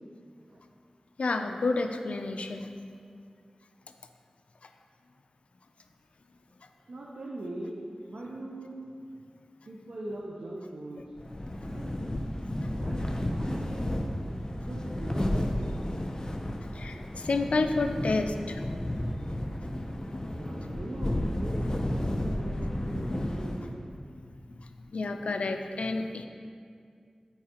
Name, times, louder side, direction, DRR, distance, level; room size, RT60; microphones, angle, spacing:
voice 1, 1.2-2.7 15.9-16.0 16.7-18.6 19.6-19.9 24.5-26.3, left 3 dB, 90° left, 6 dB, 0.4 m, -30 dB
voice 2, 6.9-7.8 8.1-8.8 9.7-11.1 11.6-12.0 12.6-13.9 14.5-15.5 20.3-21.7 22.0-22.6 22.9-23.8, right 1 dB, 80° right, -4 dB, 0.8 m, -41 dB
sound 1, 11.2-23.9, left 1 dB, 35° left, 0.7 m, -32 dB
13.5 x 4.7 x 2.9 m, 2.3 s
wide cardioid pair, 45°, 2 cm